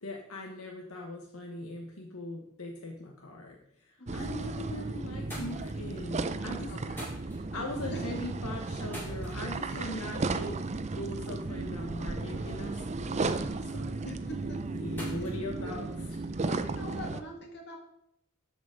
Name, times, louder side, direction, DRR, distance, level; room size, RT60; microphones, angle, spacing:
voice 1, 0.0-3.6 3.8-6.7 7.3-10.6 11.0-14.0 14.7-15.9, left 1 dB, 75° left, 1 dB, 1.2 m, -40 dB
sound 1, 4.1-17.2, right 3 dB, 30° right, 0.5 m, -35 dB
sound 2, 4.6-4.8 5.1-16.7, equal, 10° left, 4.5 m, -52 dB
voice 2, 6.7-7.0 7.5-8.0 9.7-9.9 14.0-14.6 15.1-15.3 15.6-15.7 16.4-17.8, equal, 50° left, 1 dB, 2.2 m, -44 dB
13.0 x 5.1 x 5.0 m, 0.75 s
head